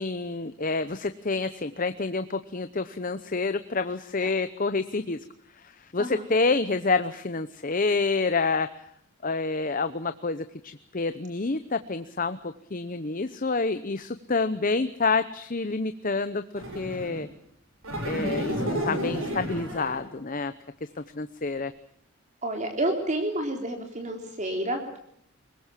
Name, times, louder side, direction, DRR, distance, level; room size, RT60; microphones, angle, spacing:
voice 1, 0.0-5.2 5.6-8.7 9.2-17.3 18.1-20.5 21.2-21.7, left 3 dB, 40° left, 11 dB, 0.8 m, -28 dB
voice 2, 6.0-6.3 22.4-25.0, right 1 dB, 35° right, 4 dB, 3.6 m, -29 dB
sound 1, 16.5-17.2 17.8-20.1, equal, 75° right, 7.8 m, -31 dB
23.5 x 20.0 x 7.5 m, 0.68 s
head